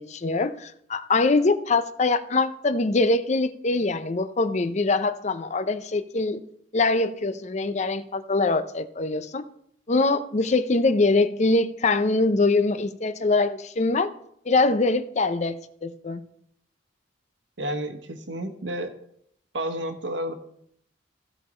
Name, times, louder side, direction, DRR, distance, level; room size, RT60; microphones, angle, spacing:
voice 1, 0.0-6.4 6.7-9.4 9.9-14.1 14.5-16.2, left 3 dB, 40° left, 12 dB, 0.5 m, -23 dB
voice 2, 17.6-18.9 19.5-20.3, right 1 dB, 75° right, 7 dB, 1.3 m, -31 dB
15.5 x 5.5 x 4.3 m, 0.70 s
head